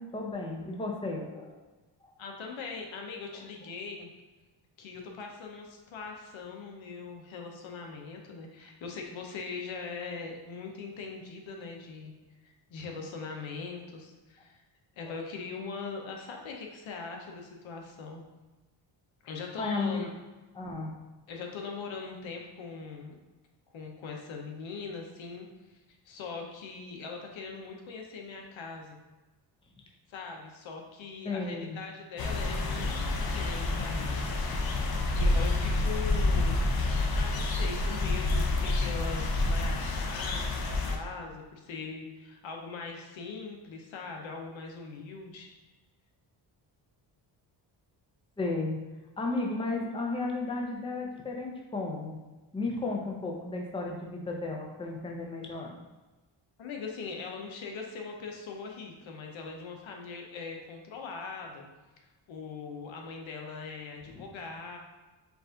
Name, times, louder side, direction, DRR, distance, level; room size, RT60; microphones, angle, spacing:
voice 1, 0.0-1.6 15.0-15.2 19.6-20.1 20.5-20.9 31.2-31.8 48.4-48.8 49.2-52.2 52.5-55.7 64.1-64.2, left 3 dB, 10° left, 0 dB, 0.6 m, -33 dB
voice 2, 2.2-4.1 4.8-12.1 12.4-14.6 15.0-18.2 19.2-20.1 21.3-23.2 23.7-25.8 26.1-29.0 30.1-34.3 34.8-36.6 37.1-45.5 56.6-61.7 62.3-64.8, left 4 dB, 80° left, 1 dB, 0.9 m, -41 dB
sound 1, 32.2-41.0, left 2 dB, 50° left, 0.6 m, -28 dB
4.8 x 2.5 x 3.8 m, 1.2 s
cardioid pair, 115°, 46 cm